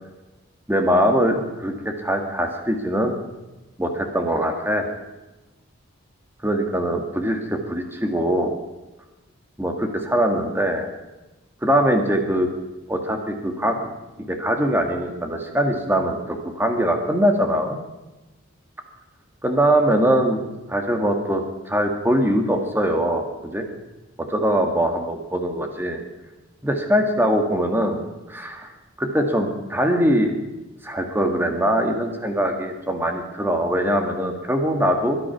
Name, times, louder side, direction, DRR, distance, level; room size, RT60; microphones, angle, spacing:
voice 1, 0.7-3.2 3.8-4.9 6.4-8.5 9.6-10.9 11.6-12.5 12.9-13.9 14.3-17.8 19.4-23.7 24.2-26.0 26.6-28.0 28.3-28.7 29.0-30.4 30.8-35.2, equal, 10° right, 4 dB, 1.8 m, -22 dB
22.0 x 10.0 x 5.9 m, 1.1 s
head